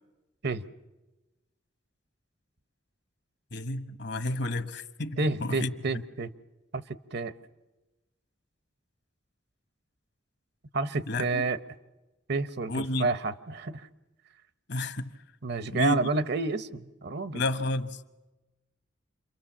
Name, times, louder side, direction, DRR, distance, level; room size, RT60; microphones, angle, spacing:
voice 1, 3.5-5.7 11.1-11.5 12.7-13.1 14.7-15.1 15.7-16.0 17.3-18.0, left 2 dB, 65° left, 10 dB, 1.2 m, -31 dB
voice 2, 5.2-6.3 6.7-7.3 10.7-11.6 12.3-13.9 15.4-17.4, right 3 dB, 60° right, 13 dB, 0.9 m, -30 dB
28.5 x 23.5 x 7.4 m, 1.1 s
head